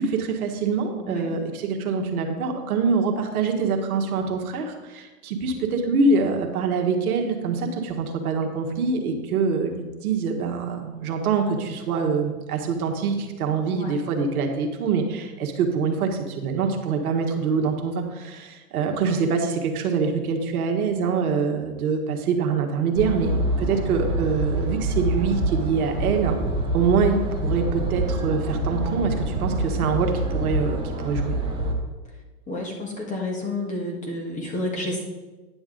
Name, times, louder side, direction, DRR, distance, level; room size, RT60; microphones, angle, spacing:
voice 1, 0.0-26.4 26.7-31.4, right 5 dB, 65° right, 3 dB, 1.6 m, -25 dB
voice 2, 1.0-1.3 13.7-14.0 19.0-19.2 32.5-35.0, left 2 dB, 15° left, 0 dB, 1.5 m, -30 dB
sound 1, 23.0-31.7, right 1 dB, 10° right, 1.2 m, -26 dB
10.0 x 7.0 x 3.9 m, 1.2 s
hypercardioid pair, 130°, 47 cm